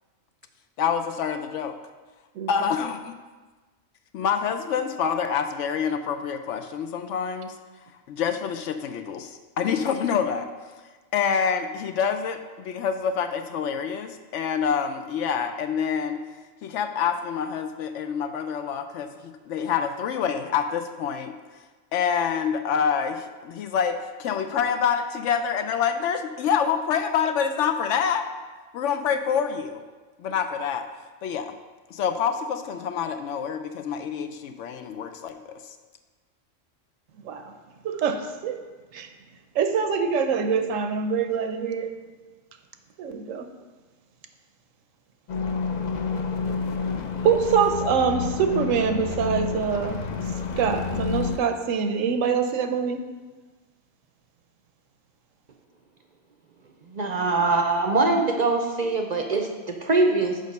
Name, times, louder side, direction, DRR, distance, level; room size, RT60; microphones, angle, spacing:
voice 1, 0.8-1.7 2.5-3.1 4.1-7.5 8.1-10.5 11.1-16.2 16.6-21.3 21.9-28.2 28.7-29.8 30.2-30.9 31.2-31.5 31.9-35.7, left 7 dB, 75° left, 8 dB, 0.9 m, -27 dB
voice 2, 37.8-38.6 38.9-39.1 39.5-41.9 43.0-43.4 47.2-50.0 50.6-53.0, right 6 dB, 85° right, 7 dB, 1.0 m, -24 dB
sound 1, 45.3-51.4, left 5 dB, 50° left, 0.5 m, -29 dB
voice 3, 56.9-60.4, right 3 dB, 50° right, 3 dB, 0.5 m, -23 dB
6.5 x 5.2 x 5.3 m, 1.3 s
omnidirectional pair, 1.3 m